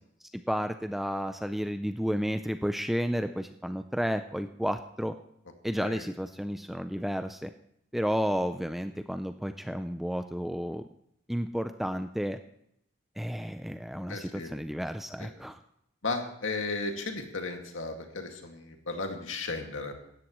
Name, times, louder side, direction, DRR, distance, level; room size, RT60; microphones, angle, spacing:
voice 1, 0.5-5.2 5.6-7.5 7.9-10.9 11.3-12.4 13.2-15.6, equal, ahead, 8 dB, 0.4 m, -32 dB
voice 2, 14.1-14.5 15.2-15.3 16.0-19.9, left 3 dB, 80° left, 3 dB, 2.1 m, -35 dB
17.5 x 13.0 x 3.1 m, 0.75 s
head